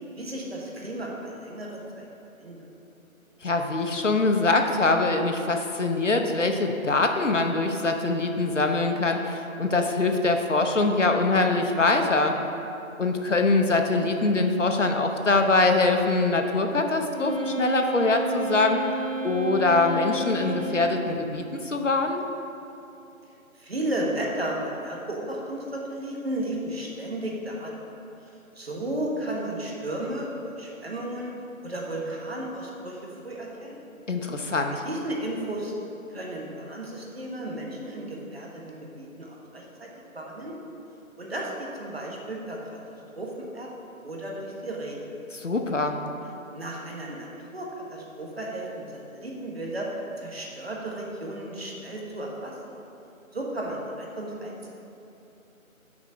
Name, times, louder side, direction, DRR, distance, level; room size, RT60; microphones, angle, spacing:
voice 1, 0.2-2.1 2.4-2.6 23.5-27.7 28.5-31.3 31.6-33.8 34.8-35.7 36.1-40.6 41.2-42.6 43.1-45.1 46.5-49.9 50.2-52.8 53.3-54.7, right 1 dB, 45° right, -2 dB, 1.2 m, -34 dB
voice 2, 3.4-12.4 13.0-18.8 19.2-22.2 34.1-34.8 45.3-46.0, left 3 dB, 60° left, 4 dB, 0.7 m, -23 dB
Wind instrument woodwind instrument, 17.1-21.2, right 2 dB, 65° right, 1.3 m, -31 dB
6.1 x 4.9 x 5.8 m, 2.8 s
figure-of-eight pair, 165°, 42 cm